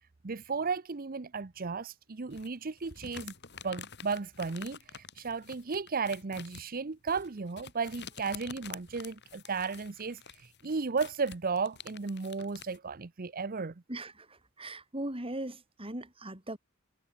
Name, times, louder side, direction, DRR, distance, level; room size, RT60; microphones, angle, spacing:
voice 1, 0.2-3.3 3.6-13.7, right 4 dB, 45° right, 0.7 m, -34 dB
sound 1, 2.3-12.8, left 7 dB, 55° left, 7.5 m, -48 dB
voice 2, 13.9-14.3 14.6-16.6, right 1 dB, 25° right, 5.1 m, -39 dB
head